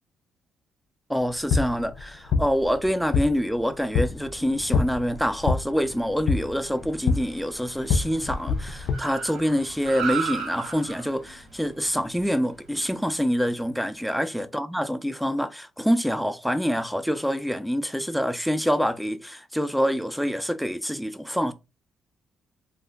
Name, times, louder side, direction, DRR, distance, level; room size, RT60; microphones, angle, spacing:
voice 1, 1.1-21.5, equal, ahead, 0.4 m, -26 dB
sound 1, 1.2-8.9, left 5 dB, 80° left, 0.4 m, -27 dB
Car, 4.1-13.6, right 6 dB, 80° right, 1.2 m, -38 dB
2.5 x 2.1 x 3.7 m
cardioid pair, 90°, 0 cm